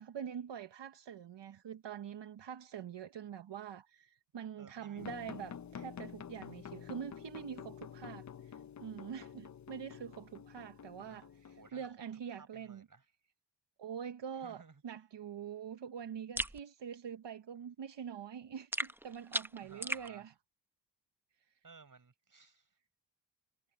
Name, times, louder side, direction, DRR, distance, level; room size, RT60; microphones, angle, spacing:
voice 1, 0.0-12.8 13.8-20.3 21.5-21.6, right 8 dB, 75° right, 1.0 m, -45 dB
voice 2, 4.6-5.2 10.9-11.3 11.6-12.0 12.3-13.1 14.3-14.8 19.6-20.3 21.6-22.8, right 4 dB, 50° right, 7.2 m, -58 dB
sound 1, 5.0-11.7, left 8 dB, 40° left, 0.6 m, -49 dB
sound 2, 16.4-16.6 18.7-20.1, right 1 dB, 5° right, 0.7 m, -37 dB
cardioid pair, 75°, 43 cm